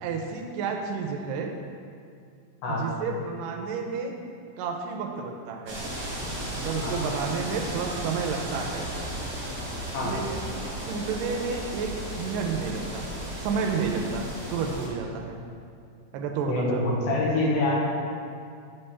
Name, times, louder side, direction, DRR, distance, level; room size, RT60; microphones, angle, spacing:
voice 1, 0.0-1.5 2.7-4.2 4.6-5.8 6.5-8.9 10.0-10.5 10.9-13.1 13.4-15.4 16.1-16.8, right 5 dB, 85° right, 3 dB, 2.2 m, -31 dB
sound 1, 5.7-14.9, right 1 dB, 30° right, 1.5 m, -35 dB
voice 2, 16.5-17.8, left 2 dB, 80° left, -3 dB, 2.8 m, -26 dB
9.5 x 3.3 x 5.6 m, 2.3 s
omnidirectional pair, 3.9 m